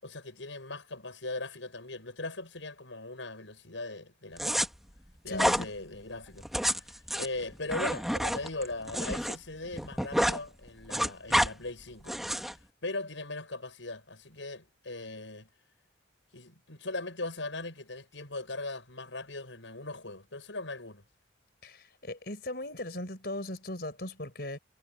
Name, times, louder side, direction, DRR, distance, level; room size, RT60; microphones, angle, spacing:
voice 1, 0.0-4.6 5.2-12.2 12.4-15.5 16.3-21.0, left 2 dB, 90° left, 7.4 m, -39 dB
sound 1, 4.4-4.7 5.3-5.6 6.4-9.3 9.6-10.4 10.7-11.5 12.1-12.5, equal, ahead, 2.3 m, -28 dB
voice 2, 5.3-5.7 21.6-24.6, left 1 dB, 55° left, 5.6 m, -38 dB
head